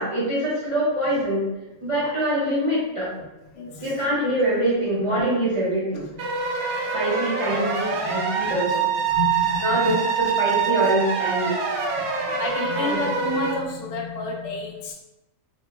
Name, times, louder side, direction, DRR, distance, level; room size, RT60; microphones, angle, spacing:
voice 1, 0.0-1.5 1.8-3.1 3.8-6.0 6.9-8.9 9.6-11.6 12.7-13.0, right 1 dB, 45° right, -8 dB, 0.4 m, -24 dB
voice 2, 3.5-4.0 5.9-6.3 8.1-8.6 9.1-10.0 11.5-11.6 12.0-14.9, left 2 dB, 60° left, -2 dB, 0.7 m, -31 dB
sound 1, 6.2-13.5, right 6 dB, 90° right, 1.1 m, -25 dB
2.9 x 2.1 x 3.2 m, 0.98 s
omnidirectional pair, 1.5 m